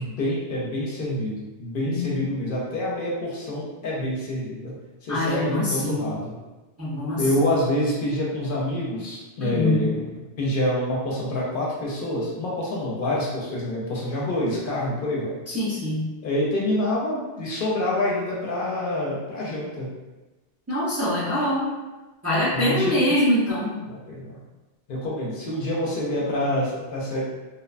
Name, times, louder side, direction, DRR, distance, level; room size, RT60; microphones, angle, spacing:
voice 1, 0.0-4.7 5.0-6.3 7.2-10.1 10.4-15.3 16.2-19.9 22.5-23.0 23.9-24.4 24.9-27.4, left 1 dB, 60° left, -4 dB, 0.7 m, -27 dB
voice 2, 5.1-6.1 6.8-7.2 9.4-9.9 15.5-16.0 20.7-21.7 22.2-23.7, left 1 dB, 20° right, -9 dB, 0.4 m, -24 dB
2.7 x 2.1 x 2.4 m, 1.1 s
omnidirectional pair, 1.1 m